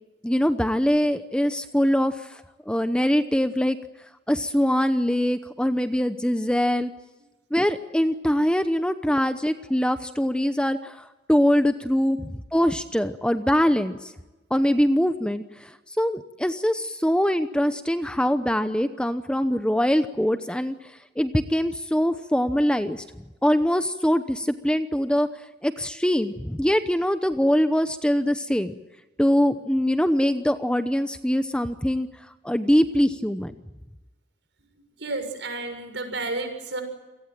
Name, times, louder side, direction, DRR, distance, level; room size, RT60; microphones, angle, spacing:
voice 1, 0.2-2.4 2.7-3.8 4.3-6.9 7.5-14.1 14.5-15.7 16.0-20.7 21.2-23.0 23.4-25.3 25.6-28.7 29.2-32.1 32.4-33.5, equal, 5° left, 9 dB, 0.8 m, -23 dB
voice 2, 35.0-36.8, right 2 dB, 70° right, 6 dB, 6.7 m, -31 dB
28.0 x 18.5 x 9.0 m, 1.1 s
head